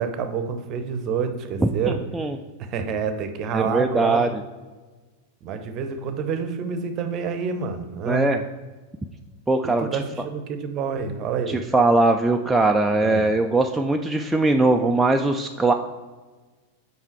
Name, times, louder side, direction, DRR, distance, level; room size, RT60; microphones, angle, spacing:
voice 1, 0.0-2.0 2.6-4.2 5.4-8.3 9.6-11.6 13.0-13.3, right 6 dB, 35° right, 8 dB, 0.7 m, -28 dB
voice 2, 1.9-2.3 3.5-4.4 8.1-8.4 9.5-9.9 11.7-15.7, right 2 dB, 5° right, 3 dB, 0.3 m, -20 dB
5.6 x 4.7 x 4.6 m, 1.3 s
figure-of-eight pair, 90°, 0 cm